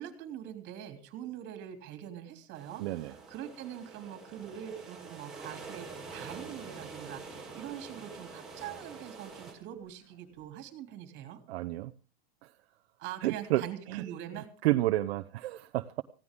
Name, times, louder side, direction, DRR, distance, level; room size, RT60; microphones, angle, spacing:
voice 1, 0.0-11.4 13.0-14.5, right 10 dB, 35° right, 7 dB, 3.2 m, -43 dB
sound 1, 2.5-9.5, right 4 dB, ahead, 4.3 m, -46 dB
voice 2, 2.8-3.1 11.5-11.9 12.4-12.5 13.2-13.6 13.9-14.0 14.3-16.0, right 16 dB, 65° right, 7 dB, 0.8 m, -30 dB
sound 2, 6.1-10.5, left 2 dB, 60° left, 7.6 m, -67 dB
19.5 x 16.0 x 3.7 m, 0.36 s
supercardioid pair, 170°, 33 cm